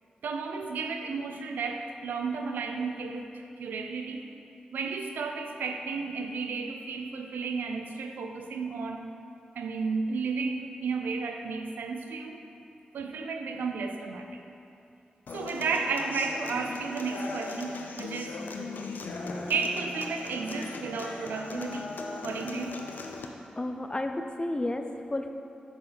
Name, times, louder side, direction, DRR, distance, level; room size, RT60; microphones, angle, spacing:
voice 1, 0.2-4.3 4.7-9.1 9.6-12.4 12.9-14.4 15.3-18.4 19.5-22.8, right 4 dB, 85° right, 5 dB, 0.5 m, -33 dB
Human voice / Acoustic guitar, 15.3-23.3, left 3 dB, 75° left, 0.6 m, -38 dB
voice 2, 23.6-25.3, left 1 dB, 30° left, 6 dB, 0.6 m, -32 dB
6.5 x 4.7 x 5.1 m, 2.6 s
supercardioid pair, 40°, 3 cm